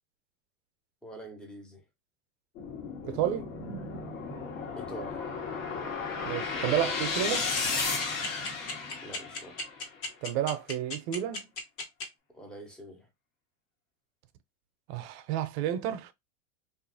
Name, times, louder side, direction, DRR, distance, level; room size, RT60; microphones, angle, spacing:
voice 1, 1.0-1.8 4.8-5.2 9.0-9.6 12.3-13.1, right 1 dB, ahead, 0.4 m, -45 dB
sound 1, 2.5-9.8, left 4 dB, 80° left, 1.3 m, -34 dB
voice 2, 3.0-3.5 6.3-7.5 10.2-11.5 14.9-16.1, right 11 dB, 55° right, 0.5 m, -31 dB
sound 2, 7.3-12.0, left 2 dB, 55° left, 1.2 m, -35 dB
2.8 x 2.4 x 2.5 m
supercardioid pair, 125°, 40 cm